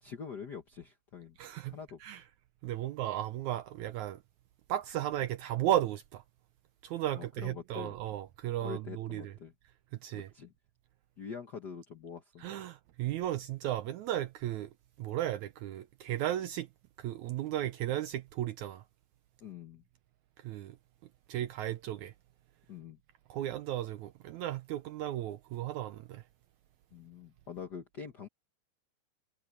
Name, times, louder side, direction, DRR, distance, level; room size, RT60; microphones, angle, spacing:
voice 1, 0.0-1.4 1.7-2.0 7.1-8.0 8.6-9.5 10.1-10.5 11.2-12.5 19.4-19.8 22.7-23.0 26.9-28.3, left 6 dB, 75° left, 0.9 m, -45 dB
voice 2, 1.4-1.7 2.0-2.2 2.6-4.2 4.7-6.2 6.8-9.3 10.0-10.3 12.4-14.7 15.0-16.7 17.0-18.8 20.4-20.7 21.3-22.1 23.3-26.2, right 13 dB, 75° right, 1.7 m, -35 dB
omnidirectional pair, 4.0 m